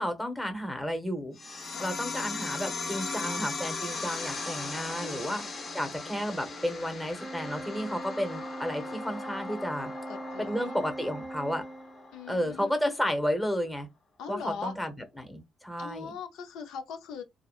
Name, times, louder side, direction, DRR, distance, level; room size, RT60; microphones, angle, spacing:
voice 1, 0.0-1.4 1.8-9.9 10.4-11.6 12.3-13.9 14.3-16.1, equal, 10° left, 0.8 m, -32 dB
sound 1, 1.4-12.4, left 3 dB, 45° left, 0.8 m, -38 dB
voice 2, 5.0-5.3 10.1-10.8 12.1-12.7 14.2-14.7 15.8-17.2, left 6 dB, 90° left, 0.5 m, -40 dB
Organ, 7.2-12.3, right 1 dB, 20° right, 0.3 m, -41 dB
2.7 x 2.2 x 2.3 m
cardioid pair, 90°, 0 cm